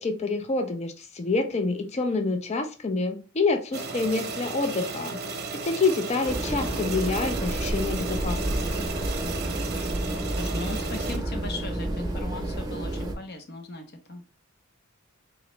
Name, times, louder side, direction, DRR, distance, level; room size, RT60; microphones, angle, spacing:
voice 1, 0.0-5.2 5.6-8.9, left 3 dB, 30° left, 0.5 m, -27 dB
sound 1, 3.7-11.2, right 4 dB, 50° right, 0.7 m, -35 dB
sound 2, 6.3-13.1, right 1 dB, 20° right, 0.8 m, -30 dB
voice 2, 9.2-9.7 10.3-14.2, left 2 dB, 50° left, 0.8 m, -38 dB
3.8 x 2.9 x 3.2 m
head